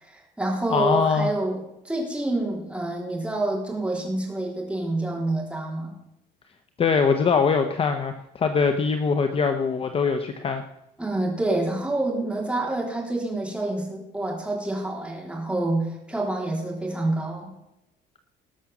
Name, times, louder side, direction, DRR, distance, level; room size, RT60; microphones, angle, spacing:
voice 1, 0.0-5.9 11.0-17.5, right 2 dB, 5° right, -1 dB, 3.5 m, -27 dB
voice 2, 0.7-1.3 6.8-10.6, left 5 dB, 30° left, 7 dB, 0.9 m, -22 dB
19.0 x 6.4 x 7.1 m, 0.87 s
cardioid pair, 160°, 18 cm